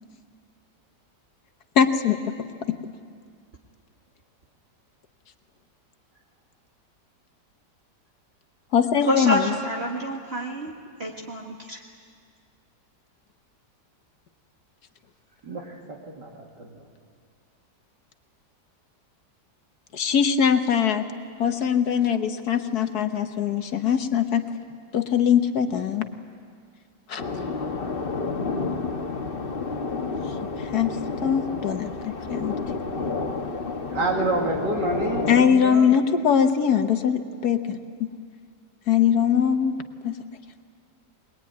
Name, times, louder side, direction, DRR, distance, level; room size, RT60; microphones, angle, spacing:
voice 1, 1.7-2.2 2.7-2.8 8.7-9.5 19.9-21.1 21.4-24.4 24.9-26.1 27.1-27.2 30.2-32.5 35.3-38.1 38.9-40.2, left 8 dB, 65° left, 8 dB, 1.6 m, -22 dB
voice 2, 9.1-11.8, equal, 40° right, -1 dB, 1.9 m, -28 dB
voice 3, 15.9-16.8 33.9-35.9, right 2 dB, 80° right, 1 dB, 2.9 m, -28 dB
sound 1, 27.2-35.4, left 4 dB, 35° left, 1.3 m, -30 dB
21.5 x 21.5 x 9.5 m, 2.1 s
omnidirectional pair, 1.8 m